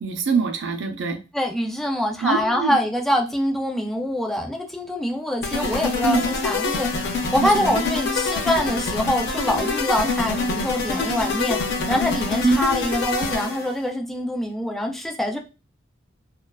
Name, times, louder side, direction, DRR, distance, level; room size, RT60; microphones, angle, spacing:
voice 1, 0.0-1.2 2.2-2.8 6.1-6.2 7.4-7.7 12.4-12.6, right 5 dB, 65° right, 0.5 m, -23 dB
voice 2, 1.3-15.4, left 1 dB, ahead, 0.4 m, -25 dB
sound 1, 5.4-13.8, left 3 dB, 55° left, 0.5 m, -25 dB
2.3 x 2.3 x 2.2 m
head